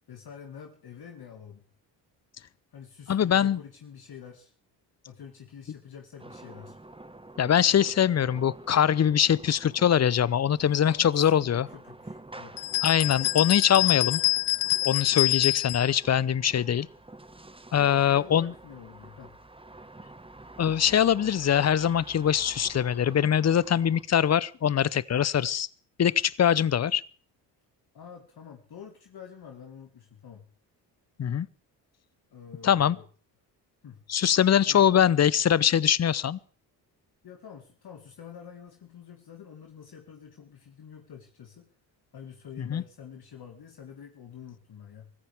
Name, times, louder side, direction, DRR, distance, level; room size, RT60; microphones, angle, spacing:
voice 1, 0.1-1.7 2.7-4.5 5.1-6.8 10.8-12.7 13.8-14.1 15.1-15.3 17.7-19.4 27.9-30.5 32.3-33.1 33.8-34.0 34.7-34.9 37.2-41.7 42.1-45.1, left 7 dB, 50° left, 3 dB, 2.1 m, -47 dB
voice 2, 3.1-3.6 7.4-11.7 12.8-14.2 14.8-16.9 17.7-18.5 20.6-25.7 26.0-27.0 31.2-31.5 32.6-33.0 34.1-36.4 42.6-42.8, left 9 dB, 35° left, 22 dB, 0.7 m, -23 dB
sound 1, 6.2-24.0, right 2 dB, 10° right, 1.6 m, -48 dB
sound 2, 12.6-15.9, left 21 dB, 70° left, 0.7 m, -26 dB
24.0 x 14.5 x 3.6 m, 0.42 s
hypercardioid pair, 50°, 49 cm